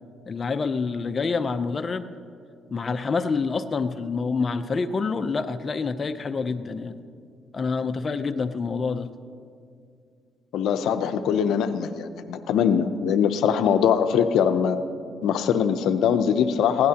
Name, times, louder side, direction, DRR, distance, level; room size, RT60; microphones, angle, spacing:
voice 1, 0.3-2.1 2.7-7.0 7.5-9.1, left 4 dB, 40° left, 9 dB, 0.6 m, -27 dB
voice 2, 10.5-14.8 15.2-16.9, left 8 dB, 85° left, 9 dB, 0.6 m, -22 dB
20.5 x 16.5 x 2.9 m, 2.3 s
cardioid pair, 90°, 0 cm